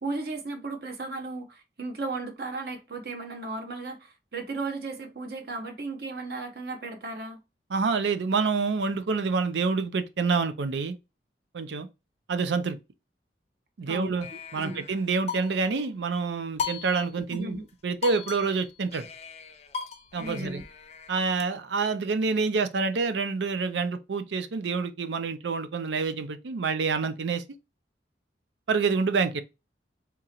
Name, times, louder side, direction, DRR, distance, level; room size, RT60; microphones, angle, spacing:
voice 1, 0.0-7.4 13.9-14.8 17.3-17.6 20.2-20.6, right 3 dB, 60° right, 0.9 m, -35 dB
voice 2, 7.7-11.0 11.5-11.9 12.3-12.8 13.8-14.3 14.5-17.6 17.8-19.1 20.1-20.6 21.1-27.4 28.7-29.4, right 4 dB, 85° right, 0.5 m, -27 dB
sound 1, 14.2-15.9 16.6-17.4 17.7-17.8 18.0-21.4, left 6 dB, 35° left, 0.5 m, -38 dB
3.6 x 2.9 x 2.9 m
head